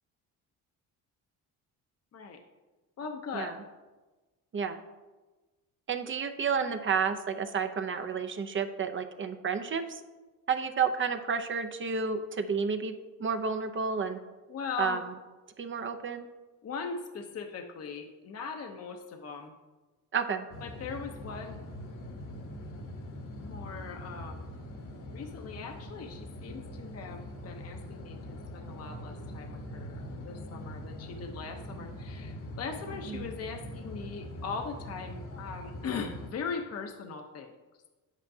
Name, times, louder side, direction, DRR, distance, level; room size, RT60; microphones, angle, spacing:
voice 1, 3.0-3.5 14.5-15.0 16.6-19.5 20.6-21.6 23.4-24.5 25.1-37.6, left 5 dB, 40° left, 4 dB, 0.8 m, -40 dB
voice 2, 5.9-10.0 10.5-14.2 14.8-15.0 15.6-16.3 20.1-20.4 33.1-33.2, right 6 dB, 35° right, 7 dB, 0.6 m, -31 dB
sound 1, 20.5-36.3, left 1 dB, 55° left, 1.3 m, -43 dB
9.1 x 8.1 x 2.7 m, 1.2 s
cardioid pair, 90°, 37 cm